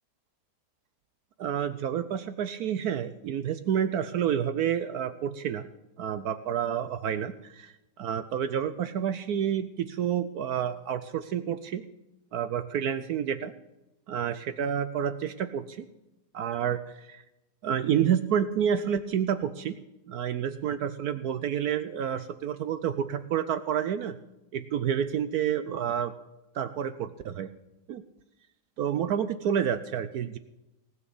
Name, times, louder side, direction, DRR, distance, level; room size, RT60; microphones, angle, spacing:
voice 1, 1.4-5.7 6.0-11.8 12.3-13.5 14.1-15.9 16.3-17.2 17.6-19.8 20.1-24.2 24.5-26.1 26.5-27.5 27.9-28.0 28.8-30.4, right 9 dB, 70° right, 12 dB, 1.1 m, -29 dB
18.5 x 6.2 x 7.7 m, 0.96 s
omnidirectional pair, 1.8 m